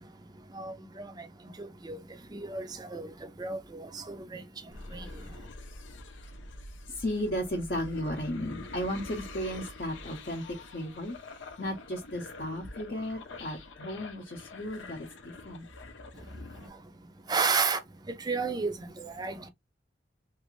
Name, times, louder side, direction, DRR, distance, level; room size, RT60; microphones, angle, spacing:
voice 1, 0.5-1.3 1.6-2.0 2.3-3.1 3.4-4.4 4.9-5.1 17.3-17.8 18.2-19.4, right 4 dB, 20° right, 0.4 m, -32 dB
sound 1, 4.7-16.7, left 2 dB, 85° left, 0.6 m, -46 dB
voice 2, 6.9-15.7, equal, 50° left, 0.7 m, -35 dB
3.1 x 2.5 x 3.0 m
head